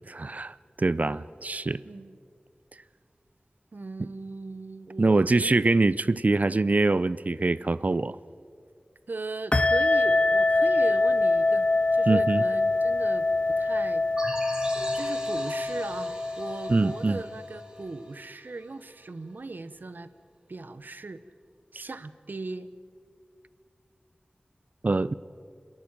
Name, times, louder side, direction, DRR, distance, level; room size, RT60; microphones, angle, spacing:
voice 1, 0.1-1.8 5.0-8.2 12.1-12.4 16.7-17.2 24.8-25.1, right 3 dB, 55° right, 18 dB, 0.5 m, -24 dB
voice 2, 1.8-2.2 3.7-5.7 9.1-11.7 11.9-13.3 13.6-14.0 14.5-14.6 14.9-20.1 20.5-21.2 21.7-22.7, right 3 dB, 75° right, 13 dB, 0.9 m, -38 dB
sound 1, 9.5-17.6, left 2 dB, 35° left, 0.4 m, -25 dB
sound 2, 14.2-18.6, right 1 dB, 25° right, 3.2 m, -40 dB
27.0 x 11.0 x 9.1 m, 2.3 s
wide cardioid pair, 50°, 3 cm